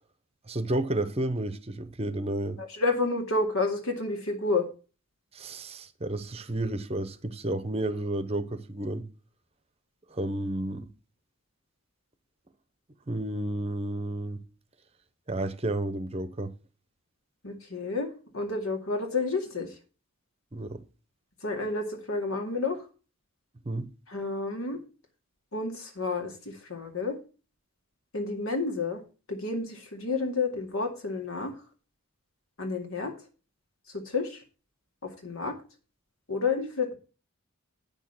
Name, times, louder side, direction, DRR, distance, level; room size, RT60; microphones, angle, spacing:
voice 1, 0.5-2.6 5.3-9.1 10.1-10.9 13.1-14.4 15.3-16.5 20.5-20.8 23.6-23.9, right 1 dB, 30° right, 0.7 m, -31 dB
voice 2, 2.6-4.7 17.4-19.7 21.4-22.8 24.1-24.8 25.5-27.2 28.1-29.0 29.3-31.5 32.6-33.1 33.9-34.4 35.0-35.5 36.3-36.9, left 3 dB, 80° left, 2.3 m, -30 dB
9.0 x 6.3 x 6.1 m
head